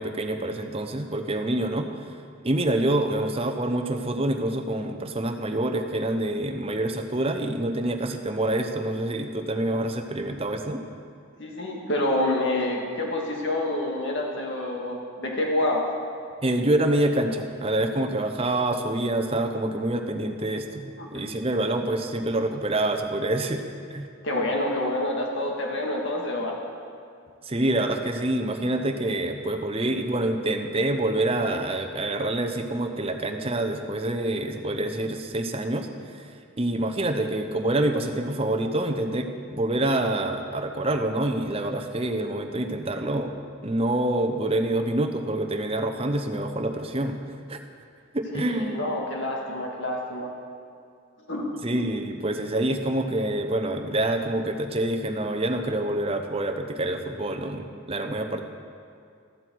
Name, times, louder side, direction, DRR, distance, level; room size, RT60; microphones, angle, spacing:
voice 1, 0.0-1.9 2.4-10.8 16.4-23.6 23.9-24.1 27.4-36.3 36.6-43.3 43.6-47.2 47.5-47.6 48.1-48.8 51.6-58.4, right 1 dB, 25° right, 5 dB, 0.8 m, -26 dB
voice 2, 11.4-15.9 21.0-21.3 24.2-26.5 48.3-50.3 51.3-51.6, left 1 dB, 55° left, -1 dB, 2.0 m, -27 dB
14.5 x 12.0 x 4.7 m, 2.4 s
head